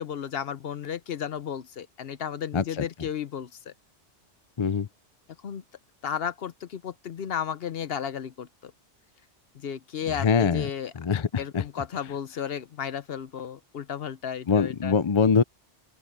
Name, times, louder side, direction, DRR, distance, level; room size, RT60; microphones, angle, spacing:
voice 1, 0.0-3.7 5.4-5.6 6.0-8.7 9.5-10.9 11.4-14.9, left 8 dB, 60° left, 0.9 m, -33 dB
voice 2, 2.5-2.9 4.6-4.9 10.1-10.7 11.0-11.6 14.5-15.4, left 6 dB, 35° left, 0.5 m, -23 dB
open air
omnidirectional pair, 1.2 m